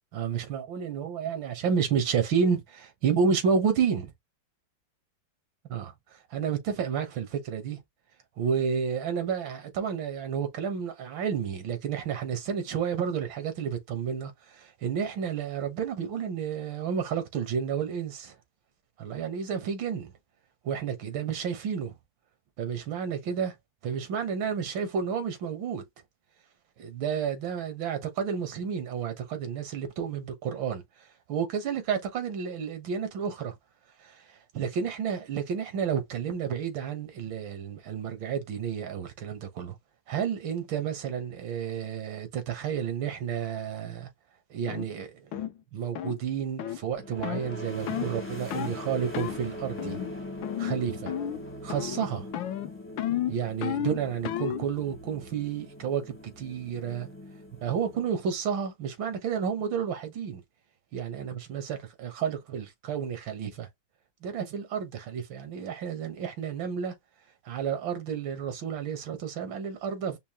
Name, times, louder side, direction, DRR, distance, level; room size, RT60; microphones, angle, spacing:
voice 1, 0.1-4.1 5.7-7.8 8.4-18.3 19.0-20.1 20.6-21.9 22.6-23.5 23.8-25.8 26.8-30.8 31.3-33.6 34.0-34.2 34.5-39.8 40.1-44.1 44.5-45.4 45.7-50.0 50.6-51.1 51.6-52.3 53.3-57.1 57.6-60.4 60.9-63.7 64.2-66.9 67.5-70.2, right 7 dB, 85° right, 1.9 m, -31 dB
sound 1, 44.7-44.9 45.3-45.5 45.9-46.2 46.6-46.8 47.2-47.5 47.9-48.1 48.5-48.8 49.1-49.4 49.8-50.1 50.4-50.8 51.1-51.4 51.7-52.0 52.3-54.7, left 11 dB, 80° left, 1.4 m, -32 dB
sound 2, 46.9-58.5, left 1 dB, 10° left, 0.7 m, -41 dB
5.4 x 2.2 x 2.9 m
omnidirectional pair, 2.1 m